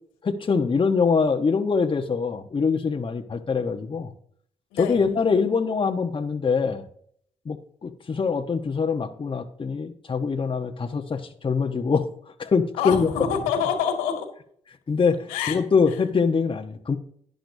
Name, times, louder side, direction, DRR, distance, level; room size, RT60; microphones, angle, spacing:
voice 1, 0.2-4.1 4.8-6.8 7.4-7.6 7.8-12.1 12.4-13.1 14.9-17.0, left 5 dB, 35° left, 4 dB, 1.1 m, -24 dB
voice 2, 4.7-5.0 12.8-14.3 15.3-15.6, left 7 dB, 85° left, 3 dB, 2.1 m, -26 dB
11.5 x 10.5 x 2.7 m, 0.62 s
hypercardioid pair, 45°, 14 cm